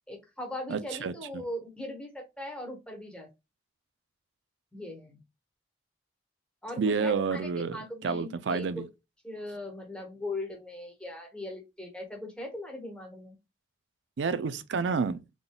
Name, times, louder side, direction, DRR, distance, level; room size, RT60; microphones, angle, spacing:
voice 1, 0.1-3.3 4.7-5.2 6.6-8.9 9.2-13.4, left 1 dB, 5° left, 1.2 m, -39 dB
voice 2, 0.7-1.4 6.8-8.8 14.2-15.2, right 5 dB, 75° right, 0.4 m, -30 dB
3.7 x 3.7 x 2.2 m
head